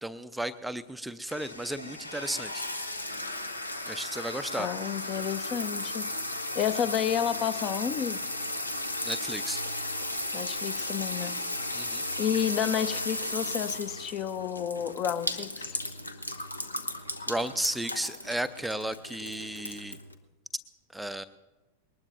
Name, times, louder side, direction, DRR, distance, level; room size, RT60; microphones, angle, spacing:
voice 1, 0.0-2.6 3.9-4.7 9.0-9.6 11.7-12.0 17.3-20.0 20.9-21.2, right 1 dB, 5° right, 11 dB, 0.5 m, -34 dB
sound 1, 1.3-20.1, left 1 dB, 80° left, 1.1 m, -35 dB
voice 2, 4.6-6.1 6.5-8.2 10.3-11.3 12.2-15.8, left 9 dB, 35° left, 15 dB, 0.7 m, -30 dB
21.5 x 19.5 x 2.6 m, 1.2 s
figure-of-eight pair, 90°, 0 cm